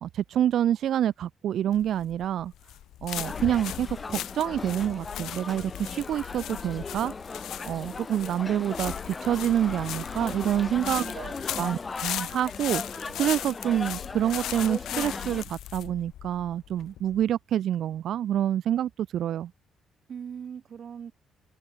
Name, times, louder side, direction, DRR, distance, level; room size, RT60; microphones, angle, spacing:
voice 1, 0.0-2.5 3.0-19.5, right 11 dB, 70° right, 1.3 m, -27 dB
sound 1, 1.7-17.2, left 12 dB, 80° left, 1.8 m, -38 dB
sound 2, 3.2-15.4, left 4 dB, 30° left, 0.8 m, -38 dB
voice 2, 10.8-11.1 11.5-11.7 20.1-21.1, right 7 dB, 55° right, 4.2 m, -40 dB
cardioid pair, 90°, 0 cm